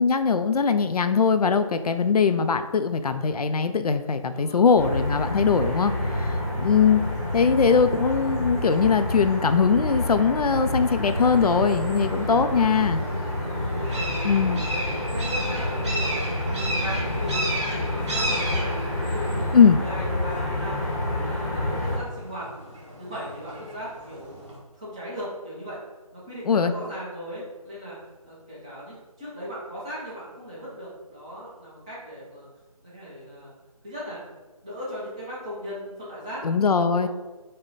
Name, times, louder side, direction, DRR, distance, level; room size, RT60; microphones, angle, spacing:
voice 1, 0.0-7.0 7.3-13.0 14.2-14.6 19.5-19.8 26.5-26.7 36.4-37.1, left 5 dB, 80° left, 10 dB, 0.4 m, -21 dB
voice 2, 4.3-4.9 6.2-6.5 13.4-16.2 16.5-20.8 21.2-22.5 23.0-24.4 24.8-25.8 26.1-28.0 28.2-32.5 32.8-33.5 33.8-34.2 34.6-36.5 37.0-37.1, equal, 10° right, -9 dB, 0.6 m, -38 dB
sound 1, 4.8-22.0, left 1 dB, 25° left, 0.8 m, -28 dB
sound 2, 10.8-24.6, right 1 dB, 50° right, 1.3 m, -35 dB
5.4 x 2.1 x 3.9 m, 1.2 s
figure-of-eight pair, 165°, 19 cm